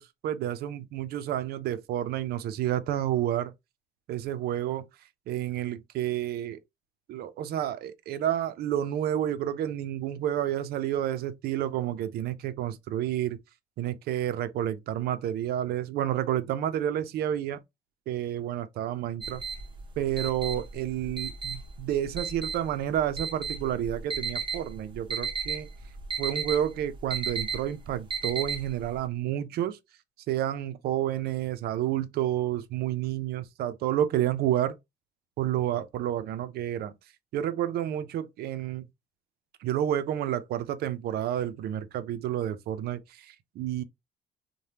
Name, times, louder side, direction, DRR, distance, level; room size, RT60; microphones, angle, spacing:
voice 1, 0.0-3.5 4.1-4.8 5.3-6.6 7.1-13.4 13.8-17.6 18.1-19.4 20.0-25.7 26.2-29.8 30.3-34.8 35.4-36.9 37.3-38.8 39.6-43.8, right 11 dB, 70° right, 0.5 m, -30 dB
sound 1, 19.2-29.0, right 5 dB, 30° right, 0.8 m, -34 dB
3.2 x 2.2 x 2.7 m
cardioid pair, 110°, 17 cm